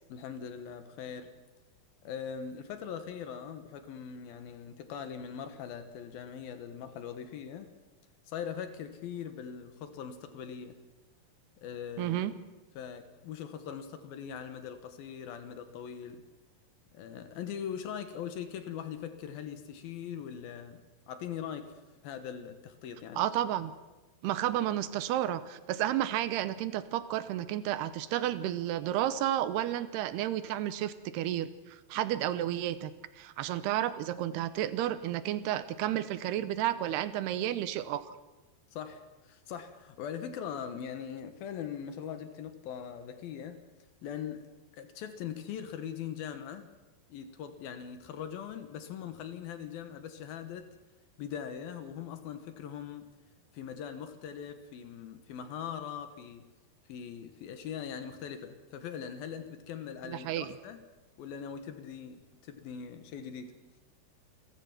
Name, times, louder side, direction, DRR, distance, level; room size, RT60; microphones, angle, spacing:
voice 1, 0.1-1.3 2.0-7.7 8.3-10.8 11.6-12.2 12.8-16.2 16.9-20.8 21.1-21.7 22.0-23.3 38.7-43.6 44.0-44.4 44.7-46.7 47.1-50.7 51.2-53.1 53.5-56.4 56.9-60.8 61.2-63.5, left 8 dB, 70° left, 9 dB, 2.9 m, -41 dB
voice 2, 12.0-12.3 23.2-23.7 24.2-38.1 60.0-60.5, right 12 dB, 85° right, 13 dB, 2.9 m, -32 dB
28.5 x 15.0 x 6.1 m, 1.1 s
omnidirectional pair, 4.7 m